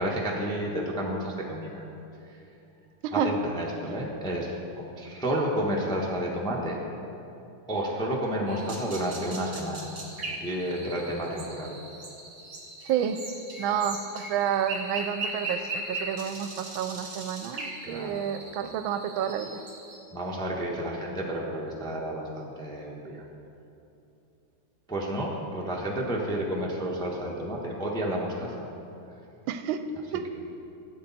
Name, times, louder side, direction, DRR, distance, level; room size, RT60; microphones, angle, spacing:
voice 1, 0.0-1.8 2.3-2.4 3.1-6.8 7.7-9.9 10.4-11.7 17.8-18.2 20.1-23.2 24.9-28.7, right 1 dB, 5° left, -3 dB, 0.7 m, -31 dB
voice 2, 3.0-3.3 12.8-13.2 13.6-19.6 29.5-29.8 30.1-30.2, right 9 dB, 80° right, 9 dB, 1.3 m, -29 dB
sound 1, 8.5-20.0, right 2 dB, 35° right, 1.8 m, -39 dB
14.5 x 7.9 x 4.1 m, 2.8 s
omnidirectional pair, 2.2 m